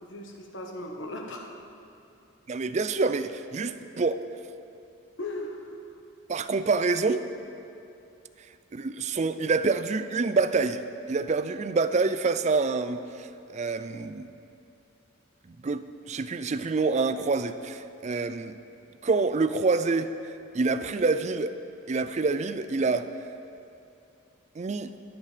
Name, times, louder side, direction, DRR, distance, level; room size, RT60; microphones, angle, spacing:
voice 1, 0.0-1.6 5.2-5.8, left 1 dB, 65° left, 1 dB, 1.4 m, -37 dB
voice 2, 2.5-4.2 6.3-7.2 8.7-10.8 11.1-14.3 15.5-18.6 19.0-20.1 20.5-21.5 21.9-23.1 24.6-24.9, right 4 dB, 35° right, 11 dB, 0.4 m, -27 dB
21.5 x 8.3 x 3.4 m, 2.6 s
head